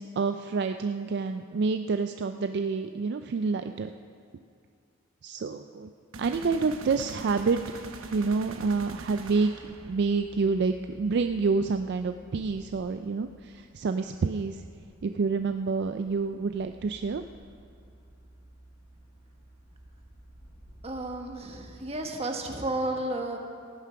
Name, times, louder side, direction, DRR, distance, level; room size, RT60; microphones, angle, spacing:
voice 1, 0.0-3.9 5.2-5.9 6.2-7.6 8.1-14.6 15.0-17.2, right 4 dB, 55° right, 7 dB, 0.4 m, -28 dB
sound 1, 6.1-10.1, right 2 dB, 85° right, 1.0 m, -42 dB
sound 2, 7.5-22.1, right 1 dB, 50° left, 4.3 m, -54 dB
voice 2, 20.8-23.4, right 1 dB, 30° right, 2 dB, 1.3 m, -32 dB
15.5 x 9.3 x 5.8 m, 2.2 s
head